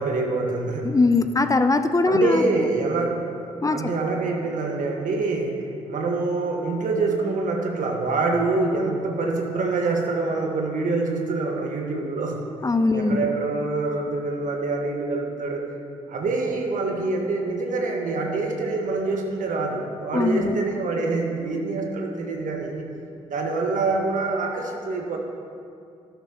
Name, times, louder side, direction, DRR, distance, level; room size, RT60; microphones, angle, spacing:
voice 1, 0.0-0.9 2.1-3.2 3.5-12.4 12.9-15.6 16.1-22.9 23.3-25.2, right 3 dB, 65° right, 1 dB, 1.6 m, -25 dB
voice 2, 0.8-2.7 3.6-3.9 12.6-13.3 20.1-20.6, left 3 dB, 25° left, 9 dB, 0.6 m, -21 dB
12.0 x 12.0 x 3.0 m, 2.4 s
supercardioid pair, 55°, 15 cm